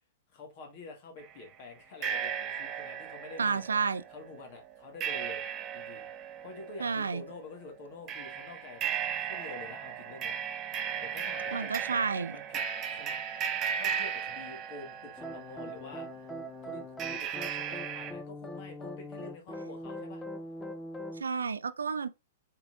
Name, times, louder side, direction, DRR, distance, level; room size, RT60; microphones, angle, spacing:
voice 1, 0.3-3.6 4.1-5.4 5.7-6.1 6.4-10.4 10.7-12.0 12.3-13.2 13.7-16.3 16.6-20.2, left 3 dB, 50° left, 1.6 m, -48 dB
sound 1, 1.2-1.3 2.0-16.0 17.0-18.1, right 8 dB, 30° right, 0.7 m, -36 dB
voice 2, 3.4-4.0 6.8-7.2 11.5-12.4 21.2-22.1, right 5 dB, 80° right, 0.4 m, -30 dB
sound 2, 15.2-21.2, equal, 10° left, 0.6 m, -41 dB
4.7 x 3.9 x 2.5 m
hypercardioid pair, 110°, 0 cm